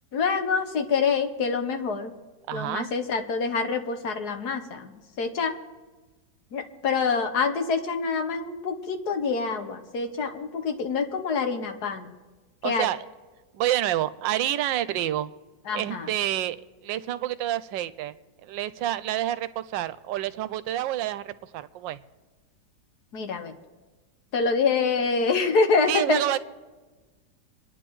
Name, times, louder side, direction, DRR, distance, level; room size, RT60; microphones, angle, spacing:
voice 1, 0.1-2.1 2.5-5.5 6.5-12.1 12.6-12.9 15.7-16.1 23.1-23.5 24.3-26.2, left 5 dB, 65° left, 6 dB, 1.5 m, -26 dB
voice 2, 2.5-2.9 12.6-13.0 13.5-15.3 15.7-18.1 18.4-22.0 25.9-26.4, right 13 dB, 80° right, 15 dB, 1.3 m, -28 dB
28.0 x 10.0 x 3.1 m, 1.2 s
omnidirectional pair, 2.0 m